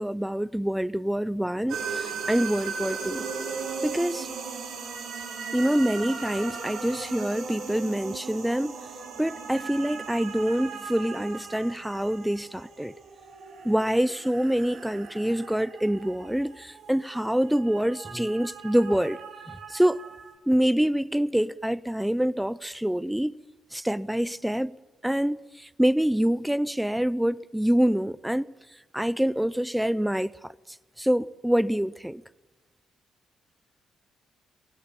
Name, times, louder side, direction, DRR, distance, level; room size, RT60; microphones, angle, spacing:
voice 1, 0.0-3.2 3.8-4.3 5.5-8.8 9.2-12.9 13.6-19.2 19.5-20.0 20.5-23.4 23.7-24.7 25.0-28.5 28.9-30.3 31.0-32.2, equal, 5° right, 0.6 m, -26 dB
sound 1, 1.7-20.3, right 5 dB, 80° right, 6.1 m, -38 dB
23.5 x 19.0 x 7.3 m
cardioid pair, 90°, 0 cm